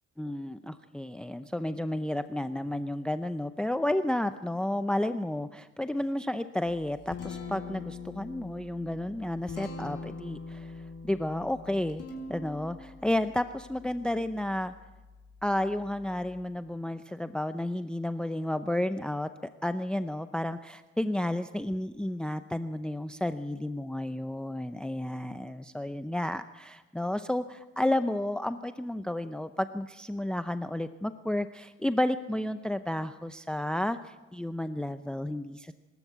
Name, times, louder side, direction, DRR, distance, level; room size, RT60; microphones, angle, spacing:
voice 1, 0.2-12.0 12.3-14.7 15.4-19.3 19.6-35.7, left 1 dB, 5° left, 11 dB, 0.6 m, -32 dB
Guitar, 6.7-16.4, left 4 dB, 55° left, 4.7 m, -44 dB
24.5 x 13.0 x 8.1 m, 1.2 s
cardioid pair, 90°, 30 cm